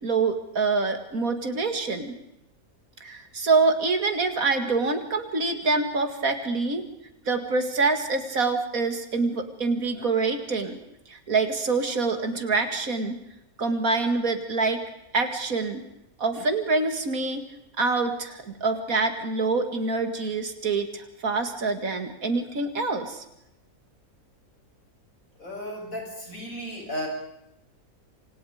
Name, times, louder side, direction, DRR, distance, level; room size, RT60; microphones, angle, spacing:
voice 1, 0.0-2.1 3.0-6.8 7.3-10.8 11.1-13.2 13.6-14.8 15.1-15.8 16.2-17.4 17.8-23.2, right 3 dB, 70° right, 7 dB, 2.7 m, -26 dB
voice 2, 25.4-27.1, equal, 65° left, 0 dB, 8.4 m, -34 dB
27.5 x 26.5 x 5.1 m, 0.84 s
omnidirectional pair, 1.5 m